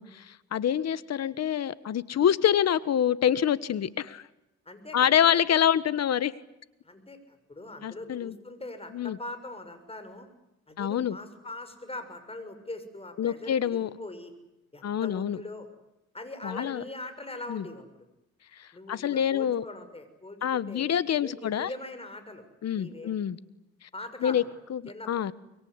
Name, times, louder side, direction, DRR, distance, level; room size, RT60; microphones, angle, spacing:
voice 1, 0.0-4.2 4.9-6.3 7.8-8.3 8.9-9.2 10.8-11.2 13.2-13.9 14.8-15.4 16.4-16.8 17.5-17.6 18.6-19.6 20.4-21.7 22.6-23.4 24.2-24.4 24.7-25.3, left 9 dB, 60° left, 16 dB, 1.4 m, -26 dB
voice 2, 4.6-5.6 6.8-10.3 10.7-14.3 14.7-15.7 16.1-17.8 18.7-20.9 21.2-22.4 22.7-23.2 23.9-24.5 24.9-25.3, left 2 dB, 20° left, 9 dB, 6.4 m, -42 dB
25.5 x 22.5 x 9.8 m, 0.92 s
cardioid pair, 90°, 30 cm